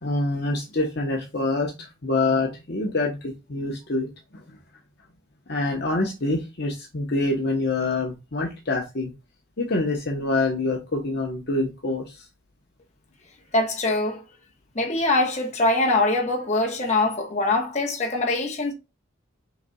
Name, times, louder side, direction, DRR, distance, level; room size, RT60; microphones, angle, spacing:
voice 1, 0.0-4.1 4.3-4.4 5.5-9.1 9.6-12.3, left 2 dB, 55° left, 1.0 m, -26 dB
voice 2, 13.5-14.2 14.7-18.7, left 2 dB, 35° left, 1.2 m, -23 dB
5.9 x 4.0 x 2.3 m
head